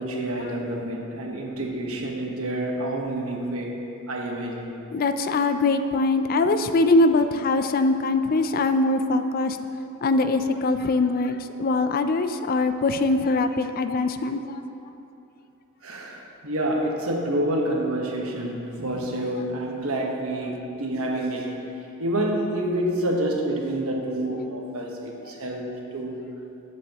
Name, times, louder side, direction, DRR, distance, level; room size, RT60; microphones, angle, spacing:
voice 1, 0.0-3.8 4.1-4.7 15.8-21.7 22.0-26.2, right 1 dB, 80° right, 0 dB, 1.3 m, -28 dB
voice 2, 4.9-9.6 10.0-14.6, left 2 dB, 40° left, 9 dB, 0.4 m, -22 dB
14.5 x 7.7 x 3.0 m, 2.8 s
head